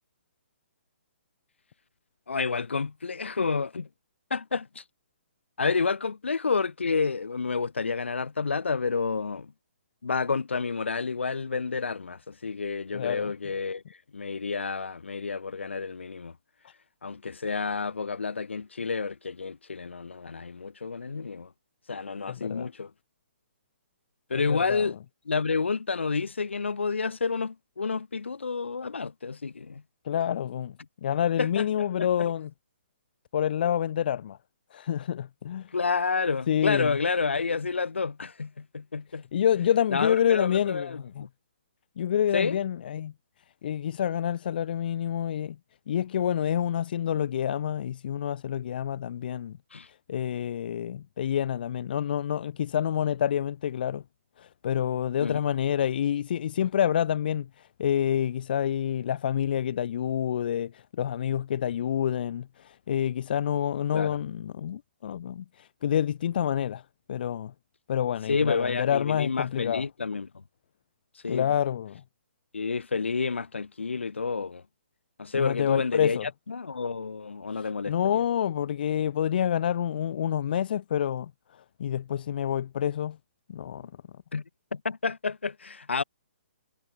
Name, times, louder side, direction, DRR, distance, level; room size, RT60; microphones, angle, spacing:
voice 1, 2.3-3.9 4.3-4.8 5.6-9.5 10.0-13.8 14.1-16.3 17.0-21.5 21.9-22.9 24.3-25.0 25.3-29.8 31.4-32.3 35.7-39.2 39.9-41.3 42.3-42.6 49.7-49.9 55.2-55.5 63.9-64.2 68.3-70.3 71.2-71.5 72.5-74.6 75.2-78.2 83.8-83.9 84.3-84.4 84.7-86.0, left 4 dB, 85° left, 6.6 m, -30 dB
voice 2, 12.9-13.3 22.3-22.7 24.5-24.9 30.0-30.7 31.0-32.5 33.3-34.4 34.7-35.7 36.5-36.9 39.3-41.2 42.0-43.1 43.6-45.6 45.9-49.6 50.1-54.0 54.4-66.8 67.1-67.5 67.9-69.8 71.3-72.0 75.3-76.3 77.9-81.3 81.8-83.2 83.5-83.9, left 9 dB, 55° left, 0.9 m, -28 dB
hypercardioid pair, 150°, 6 cm